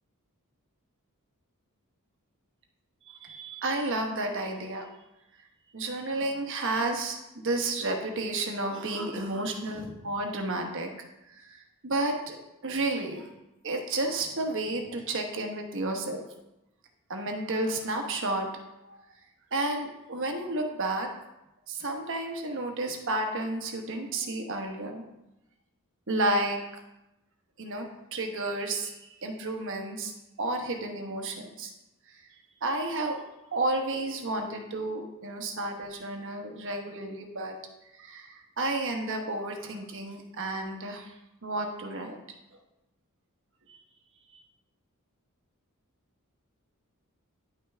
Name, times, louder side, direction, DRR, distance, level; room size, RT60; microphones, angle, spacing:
voice 1, 3.1-4.9 5.7-10.9 11.3-12.4 12.6-13.3 13.6-16.3 17.1-18.5 18.8-19.0 19.5-21.1 21.7-25.0 26.1-26.6 27.6-27.9 28.1-30.1 30.4-31.7 32.1-32.3 32.6-33.2 33.5-37.6 38.0-41.1 41.4-42.2 43.7-43.8 44.3-44.4, right 2 dB, 60° right, 3 dB, 1.1 m, -31 dB
10.0 x 5.6 x 3.4 m, 0.91 s
head